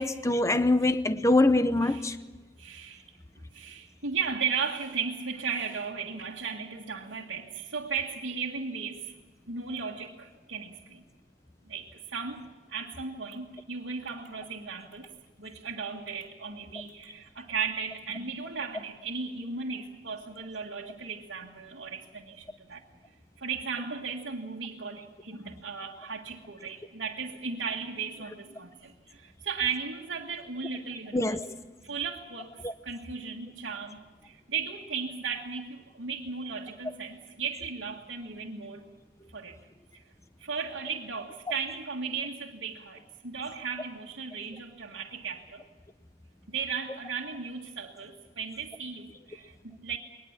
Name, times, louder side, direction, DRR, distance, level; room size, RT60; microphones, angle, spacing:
voice 1, 0.0-2.2 31.1-31.5 32.6-32.7, left 2 dB, 15° left, 0.7 m, -24 dB
voice 2, 2.6-3.1 3.5-9.1 9.5-11.0 11.6-15.1 15.4-22.8 23.4-31.4 31.8-38.9 39.3-39.6 39.9-40.0 40.4-45.6 46.5-50.0, right 5 dB, 75° right, 1.8 m, -36 dB
22.5 x 20.0 x 7.4 m
head